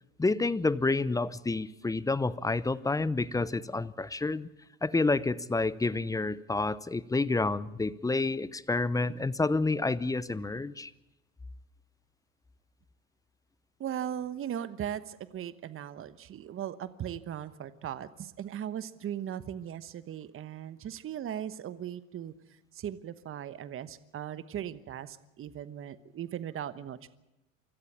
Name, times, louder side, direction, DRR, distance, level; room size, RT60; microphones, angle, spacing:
voice 1, 0.2-4.5 4.8-10.9, left 3 dB, 10° left, 19 dB, 0.7 m, -29 dB
voice 2, 13.8-27.1, right 10 dB, 30° right, 14 dB, 1.2 m, -38 dB
24.5 x 14.0 x 8.6 m, 0.95 s
hypercardioid pair, 85°, 39 cm